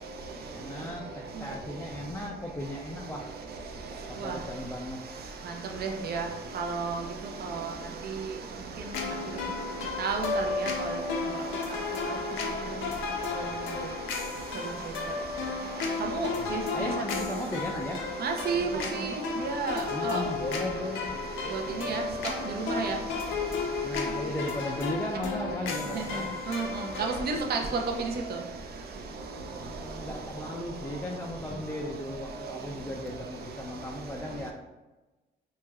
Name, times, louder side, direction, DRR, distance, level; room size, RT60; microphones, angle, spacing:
voice 1, 0.5-3.8 4.1-5.0 16.3-18.0 19.9-21.2 23.8-26.4 29.6-34.5, left 1 dB, 10° left, -1 dB, 0.3 m, -36 dB
voice 2, 5.8-6.2 6.6-7.0 10.0-10.7 16.1-16.3 18.2-19.2 19.4-20.2 21.5-22.0 22.7-22.9 26.5-26.6 27.0-27.6, right 4 dB, 50° right, 3 dB, 0.5 m, -30 dB
sound 1, 8.9-27.3, left 4 dB, 75° left, 0.6 m, -34 dB
3.3 x 3.1 x 2.3 m, 1.1 s
cardioid pair, 90°, 20 cm